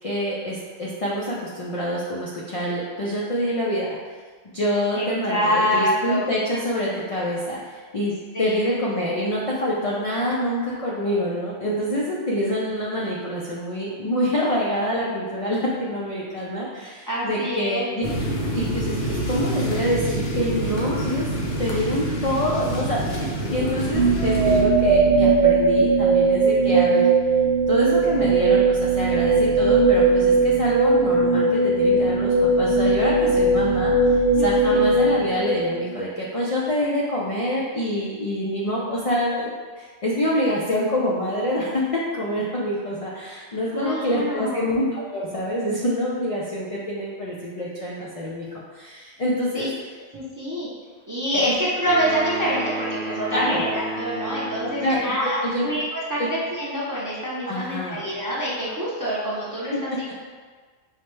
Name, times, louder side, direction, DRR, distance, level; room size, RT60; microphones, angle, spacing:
voice 1, 0.0-3.9 4.5-18.0 18.5-27.1 27.7-39.5 39.8-49.7 51.3-51.5 53.3-53.7 54.8-55.7 56.2-56.3 57.5-58.0 59.7-60.0, equal, 60° left, -5 dB, 0.3 m, -26 dB
voice 2, 4.9-6.2 8.3-8.5 17.1-17.9 34.4-34.9 43.7-44.7 49.5-49.7 50.1-50.7 51.1-60.1, equal, 25° right, -8 dB, 0.4 m, -26 dB
sound 1, 18.0-24.6, right 1 dB, 90° left, 1.1 m, -27 dB
sound 2, 23.9-36.0, right 3 dB, 85° right, 1.0 m, -19 dB
sound 3, 51.8-55.2, right 2 dB, 60° right, 0.9 m, -32 dB
4.8 x 2.1 x 3.1 m, 1.5 s
omnidirectional pair, 1.2 m